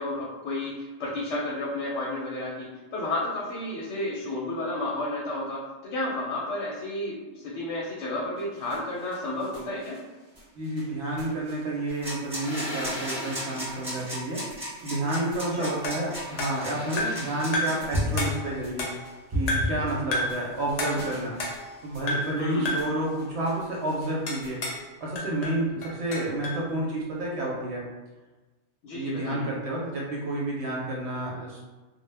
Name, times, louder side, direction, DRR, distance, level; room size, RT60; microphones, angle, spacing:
voice 1, 0.0-10.0 15.5-15.7 22.4-22.7 28.8-29.4, left 2 dB, 80° left, -5 dB, 0.9 m, -32 dB
sound 1, 8.4-24.7, left 1 dB, 35° right, 0.3 m, -39 dB
voice 2, 10.6-14.4 14.8-18.9 19.3-21.4 21.8-24.6 25.0-27.9 28.9-31.6, right 1 dB, 70° right, -3 dB, 0.8 m, -30 dB
sound 2, 11.9-18.4, equal, 5° right, 1.0 m, -35 dB
sound 3, 15.8-17.3 17.5-17.9 18.2-19.1 19.5-19.8 20.1-20.4 20.8-21.8 22.1-22.4 22.7-23.0 24.3-24.9 25.2-26.6, left 1 dB, 55° left, 0.4 m, -31 dB
2.1 x 2.1 x 3.2 m, 1.2 s
omnidirectional pair, 1.2 m